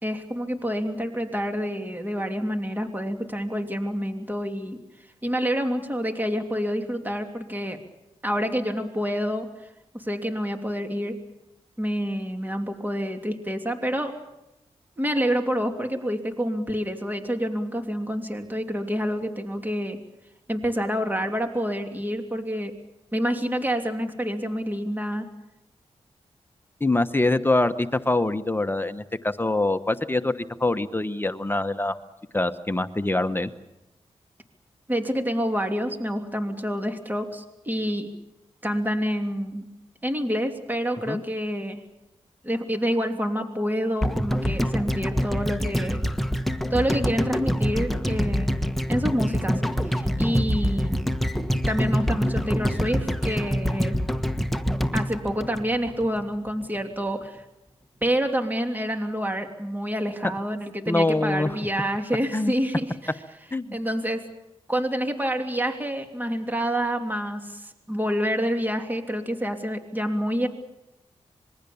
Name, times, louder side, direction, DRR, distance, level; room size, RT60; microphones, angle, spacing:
voice 1, 0.0-4.8 5.2-7.8 8.2-9.5 9.9-11.2 11.8-14.2 15.0-20.0 20.5-22.7 23.1-25.3 34.9-38.1 38.6-39.7 40.0-41.8 42.4-46.0 46.7-48.6 48.9-51.0 51.7-54.0 54.9-57.4 58.0-62.9 63.7-64.2 64.7-70.5, equal, 15° right, 4 dB, 3.0 m, -27 dB
voice 2, 26.8-32.0 32.3-33.5 41.1-41.2 60.9-61.5 62.3-62.5 63.5-63.8, left 2 dB, 20° left, 9 dB, 1.1 m, -24 dB
sound 1, 44.0-56.2 56.5-56.6, equal, ahead, 1.4 m, -25 dB
26.5 x 22.0 x 7.1 m, 0.94 s
cardioid pair, 70°, 12 cm